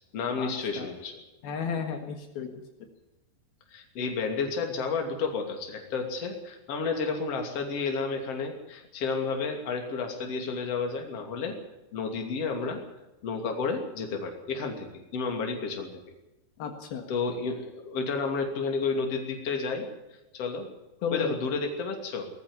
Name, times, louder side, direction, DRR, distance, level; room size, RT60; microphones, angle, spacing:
voice 1, 0.1-1.2 3.7-11.6 11.9-12.8 13.2-16.0 17.1-19.9 20.3-20.7 21.1-22.3, left 4 dB, 40° left, 3 dB, 3.5 m, -31 dB
voice 2, 1.4-2.6 16.6-17.1 21.0-21.3, left 7 dB, 75° left, 5 dB, 3.6 m, -33 dB
19.5 x 14.5 x 9.7 m, 0.97 s
omnidirectional pair, 4.5 m